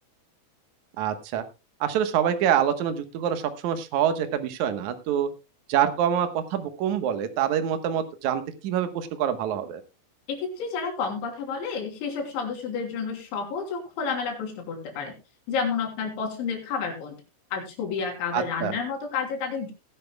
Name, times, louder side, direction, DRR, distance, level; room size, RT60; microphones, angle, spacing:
voice 1, 1.0-1.4 1.8-5.3 5.7-9.8 18.3-18.8, right 9 dB, 80° right, 9 dB, 1.7 m, -26 dB
voice 2, 10.3-15.1 15.5-17.2 17.5-19.7, left 5 dB, 85° left, 3 dB, 5.4 m, -30 dB
19.5 x 11.0 x 2.2 m, 0.27 s
omnidirectional pair, 5.2 m